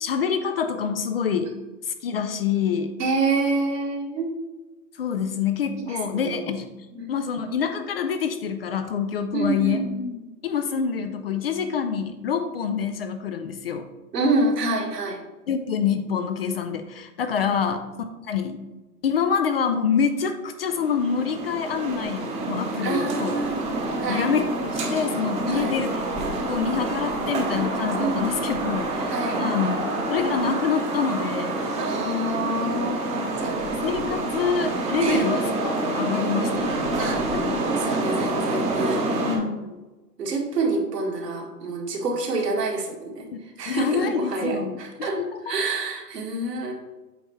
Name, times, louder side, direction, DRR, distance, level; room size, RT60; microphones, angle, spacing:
voice 1, 0.0-1.5 1.8-2.9 5.0-6.7 7.1-9.8 10.4-13.9 15.5-17.9 18.3-18.6 19.0-23.3 24.1-26.0 26.5-29.1 29.4-31.6 33.4-33.5 33.8-37.1 39.2-39.8 43.7-45.4, left 7 dB, 40° left, 8 dB, 0.4 m, -26 dB
voice 2, 3.0-4.3 5.8-6.4 6.9-7.2 9.3-10.2 14.1-15.2 17.4-17.5 22.8-23.7 24.0-24.3 25.5-25.8 27.9-28.6 29.1-29.4 31.8-33.8 34.9-35.3 37.0-37.2 37.6-39.0 40.2-45.2 45.4-46.7, right 3 dB, 75° right, 0 dB, 1.9 m, -27 dB
sound 1, 20.6-39.4, right 2 dB, 15° right, 0.9 m, -27 dB
8.1 x 4.5 x 3.1 m, 1.1 s
hypercardioid pair, 130°, 48 cm